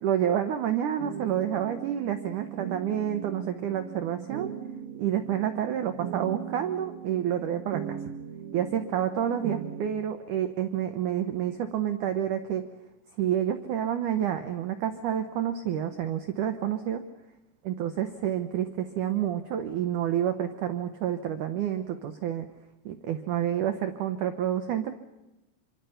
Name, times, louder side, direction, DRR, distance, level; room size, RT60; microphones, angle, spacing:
voice 1, 0.0-4.5 5.0-8.0 8.5-12.6 13.2-17.0 17.6-22.5 22.8-25.0, right 10 dB, 90° right, 8 dB, 1.7 m, -29 dB
sound 1, 1.0-9.9, right 9 dB, 65° right, 3.4 m, -39 dB
26.0 x 24.0 x 5.7 m, 0.99 s
omnidirectional pair, 5.0 m